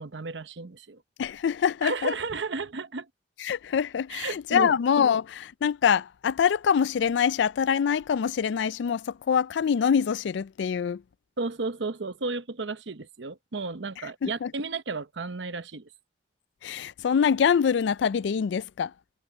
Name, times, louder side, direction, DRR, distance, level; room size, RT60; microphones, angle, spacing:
voice 1, 0.0-1.0 1.8-3.1 4.1-4.7 11.4-15.9, right 3 dB, 85° right, 0.9 m, -33 dB
voice 2, 1.2-2.1 3.4-11.0 14.2-14.5 16.6-18.9, left 7 dB, 85° left, 0.4 m, -25 dB
head